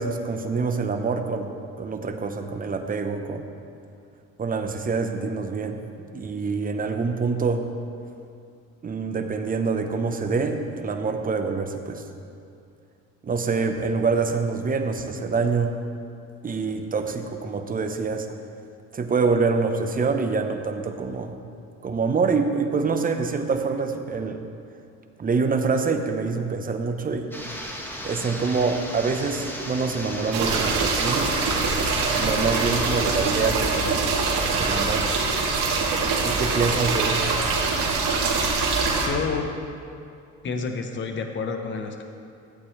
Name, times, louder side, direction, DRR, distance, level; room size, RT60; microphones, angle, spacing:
voice 1, 0.0-3.5 4.4-5.8 6.1-7.6 8.8-12.0 13.2-15.8 16.4-18.3 18.9-21.4 21.8-24.4 25.2-27.3 28.0-31.3 32.1-34.2 34.5-35.1 36.2-37.4, right 4 dB, 30° right, 6 dB, 0.9 m, -26 dB
sound 1, 27.3-33.9, equal, 5° left, 1.5 m, -35 dB
sound 2, 30.3-39.1, right 4 dB, 85° right, 1.6 m, -24 dB
voice 2, 39.1-39.5 40.4-42.0, left 5 dB, 40° left, 5 dB, 1.0 m, -29 dB
14.0 x 8.3 x 3.3 m, 2.5 s
cardioid pair, 95°, 29 cm